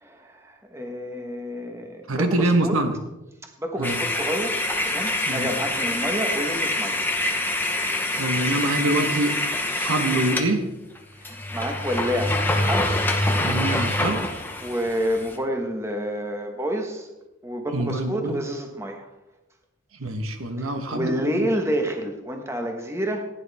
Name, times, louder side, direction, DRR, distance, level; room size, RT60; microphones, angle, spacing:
voice 1, 0.0-2.8 3.6-7.0 11.2-13.0 14.6-17.1 17.4-19.1 20.6-23.3, equal, 15° right, 3 dB, 1.3 m, -29 dB
voice 2, 2.1-2.9 3.8-4.0 5.3-5.5 8.2-9.4 9.8-10.7 13.4-14.3 17.7-18.4 20.0-21.5, right 2 dB, 80° right, 6 dB, 1.3 m, -25 dB
sound 1, 3.8-10.5 11.0-11.1 11.2-15.4, left 1 dB, 10° left, 1.0 m, -25 dB
15.5 x 10.5 x 3.5 m, 0.98 s
head